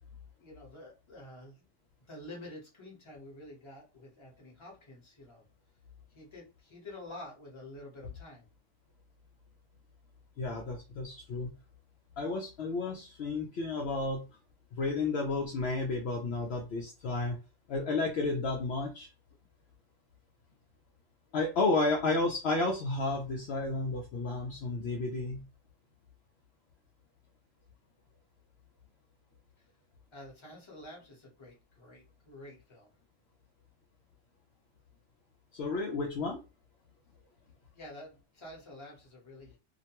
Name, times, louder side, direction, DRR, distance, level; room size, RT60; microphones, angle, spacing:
voice 1, 0.4-1.6 2.1-5.4 6.1-8.4 30.1-32.9 37.7-39.6, left 1 dB, 25° left, -2 dB, 1.0 m, -49 dB
voice 2, 10.4-11.5 12.2-14.2 14.8-17.4 17.7-19.1 21.3-25.4 35.5-36.4, left 3 dB, 65° left, 1 dB, 0.7 m, -32 dB
2.4 x 2.1 x 2.8 m, 0.31 s
omnidirectional pair, 1.3 m